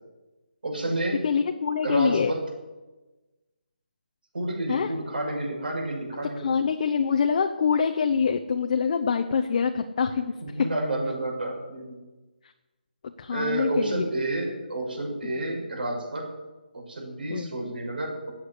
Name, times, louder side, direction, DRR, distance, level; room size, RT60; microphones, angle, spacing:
voice 1, 0.6-1.2 1.8-2.4 4.3-6.6 10.4-12.0 13.3-16.3 16.7-18.3, right 2 dB, 65° right, 0 dB, 6.7 m, -30 dB
voice 2, 1.2-2.3 4.7-4.9 6.4-10.3 13.2-14.1 15.2-15.3 17.3-17.5, left 6 dB, 45° left, 5 dB, 1.0 m, -25 dB
13.0 x 9.2 x 9.9 m, 1.1 s
figure-of-eight pair, 155°, 5 cm